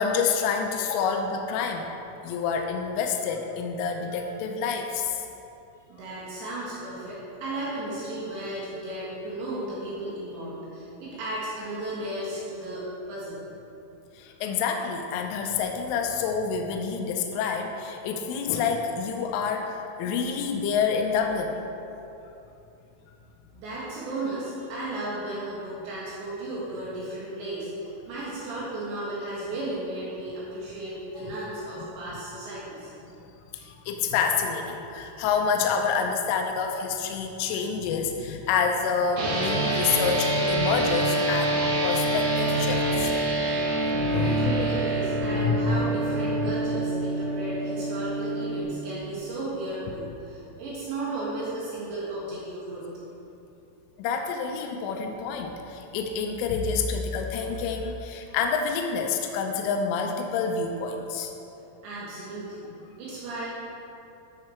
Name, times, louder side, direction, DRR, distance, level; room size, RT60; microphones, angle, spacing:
voice 1, 0.0-1.9 2.2-5.2 14.2-21.6 31.2-31.5 33.5-43.1 43.8-44.5 45.3-45.9 46.4-46.5 54.0-61.3, left 5 dB, 85° left, 3 dB, 3.2 m, -28 dB
voice 2, 5.9-13.4 23.5-32.9 44.2-52.9 61.8-62.7 63.0-63.5, right 1 dB, 70° right, -7 dB, 3.6 m, -34 dB
sound 1, 39.2-48.6, right 1 dB, 85° right, 4.5 m, -26 dB
12.0 x 6.7 x 4.3 m, 2.8 s
omnidirectional pair, 5.7 m